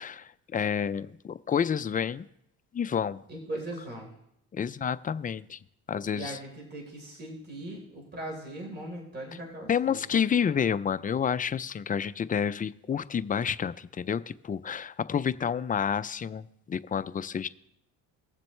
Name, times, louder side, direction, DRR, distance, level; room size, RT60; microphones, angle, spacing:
voice 1, 0.0-2.3 2.7-3.2 4.5-5.6 5.9-6.4 9.7-17.5, left 7 dB, 25° left, 14 dB, 0.4 m, -29 dB
voice 2, 3.3-4.1 6.1-10.0, right 1 dB, 25° right, -1 dB, 3.9 m, -39 dB
20.0 x 7.5 x 3.2 m, 0.75 s
cardioid pair, 90°, 37 cm